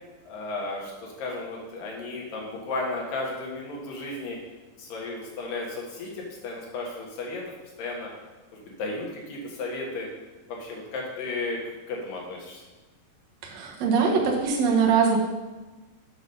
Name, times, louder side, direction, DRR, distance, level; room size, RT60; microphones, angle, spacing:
voice 1, 0.3-4.4 4.8-7.4 7.8-8.1 8.5-10.1 10.5-11.6 11.9-12.6, left 3 dB, 70° left, -2 dB, 3.2 m, -34 dB
voice 2, 13.4-15.2, right 5 dB, 60° right, -1 dB, 2.0 m, -22 dB
8.0 x 3.7 x 6.7 m, 1.2 s
omnidirectional pair, 4.2 m